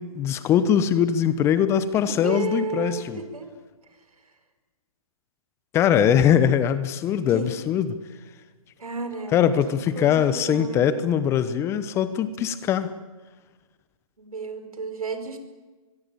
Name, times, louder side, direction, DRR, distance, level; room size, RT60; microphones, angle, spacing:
voice 1, 0.0-3.2 5.7-8.0 9.3-12.9, left 9 dB, 15° left, 14 dB, 0.9 m, -22 dB
voice 2, 2.1-3.5 3.9-4.0 4.2-4.3 7.3-7.5 8.8-9.4 10.0-11.0 14.2-15.4, right 4 dB, 80° right, 8 dB, 5.2 m, -32 dB
24.0 x 23.0 x 8.6 m, 1.3 s
figure-of-eight pair, 140°, 18 cm